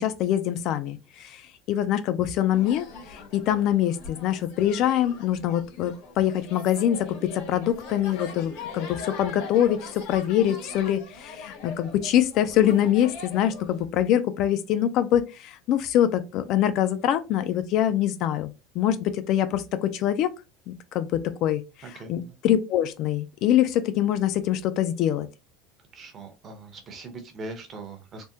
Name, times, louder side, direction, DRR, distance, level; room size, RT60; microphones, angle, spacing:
voice 1, 0.0-18.5 18.8-20.3 20.7-21.6 22.1-25.3, left 11 dB, 40° left, 0.3 m, -24 dB
sound 1, 2.5-13.8, left 4 dB, 80° left, 1.3 m, -41 dB
voice 2, 21.8-22.4 25.9-28.3, right 3 dB, 25° right, 0.7 m, -41 dB
3.4 x 2.1 x 2.7 m
cardioid pair, 165°, 0 cm